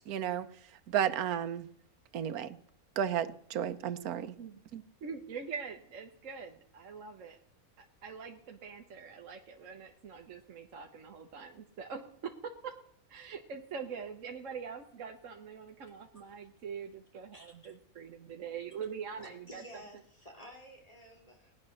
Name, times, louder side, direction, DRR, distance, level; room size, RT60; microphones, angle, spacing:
voice 1, 0.1-0.5 0.9-1.7 2.1-2.5 3.0-4.3 4.7-4.8, right 9 dB, 80° right, 11 dB, 1.3 m, -32 dB
voice 2, 5.0-7.4 7.8-12.7 13.1-19.6, right 6 dB, 60° right, 3 dB, 1.3 m, -43 dB
voice 3, 19.2-21.5, equal, 25° left, 0 dB, 2.9 m, -52 dB
18.5 x 9.8 x 6.4 m, 0.69 s
omnidirectional pair, 1.6 m